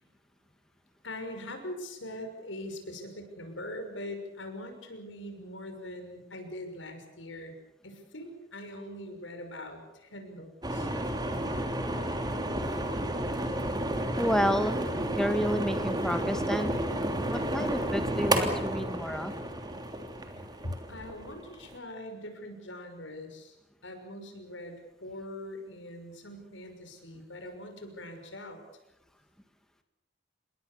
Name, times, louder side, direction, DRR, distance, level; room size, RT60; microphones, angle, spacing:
voice 1, 1.0-7.5 7.8-10.9 20.4-23.6 23.8-28.6, left 1 dB, 85° left, 6 dB, 6.2 m, -42 dB
sound 1, 10.6-21.8, right 1 dB, 20° right, 3.2 m, -31 dB
voice 2, 14.2-16.7 17.3-19.3, equal, 5° left, 7 dB, 1.7 m, -30 dB
28.0 x 21.5 x 7.1 m, 0.89 s
head